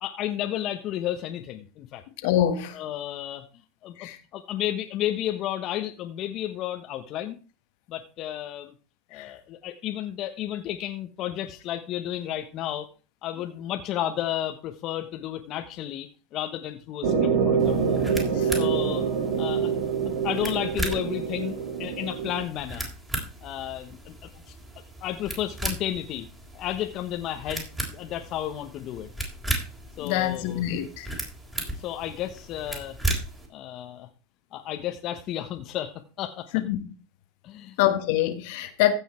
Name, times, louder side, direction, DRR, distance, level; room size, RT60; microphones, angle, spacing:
voice 1, 0.0-2.0 2.7-3.5 3.8-7.4 7.9-8.7 9.1-12.9 13.2-18.0 18.6-19.1 19.4-19.7 20.0-22.9 23.4-24.3 25.0-26.3 26.5-29.1 30.0-30.6 31.6-33.0 33.5-34.1 34.5-36.6 37.4-37.8, left 12 dB, 50° left, 1.2 m, -32 dB
voice 2, 2.2-2.8 4.0-4.2 9.1-9.3 18.3-18.5 30.0-31.1 36.5-36.8 37.8-38.9, left 12 dB, 65° left, 1.4 m, -25 dB
sound 1, 17.0-22.4, right 6 dB, 70° right, 3.2 m, -26 dB
sound 2, 17.6-33.5, right 1 dB, 10° right, 3.9 m, -36 dB
15.5 x 5.6 x 4.4 m
hypercardioid pair, 100°, 0 cm